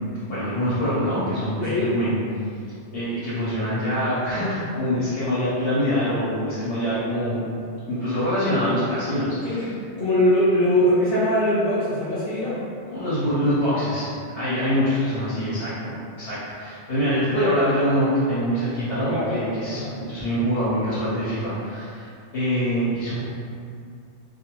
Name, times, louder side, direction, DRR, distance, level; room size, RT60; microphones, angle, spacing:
voice 1, 0.3-2.1 2.9-7.4 7.9-9.7 12.9-14.1 14.3-22.1 22.3-23.2, equal, 80° left, -11 dB, 1.1 m, -24 dB
voice 2, 1.6-1.9 9.4-12.6 18.9-20.0, left 1 dB, 65° left, -10 dB, 0.8 m, -22 dB
2.6 x 2.2 x 3.0 m, 2.4 s
omnidirectional pair, 1.1 m